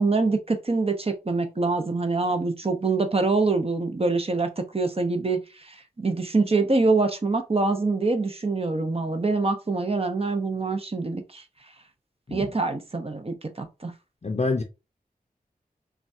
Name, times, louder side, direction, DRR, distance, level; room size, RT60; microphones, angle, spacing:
voice 1, 0.0-11.4 12.3-13.9, right 3 dB, 40° right, 0.7 m, -25 dB
voice 2, 14.2-14.6, left 3 dB, 45° left, 0.6 m, -26 dB
5.9 x 2.3 x 2.7 m
wide cardioid pair, 50°, 16 cm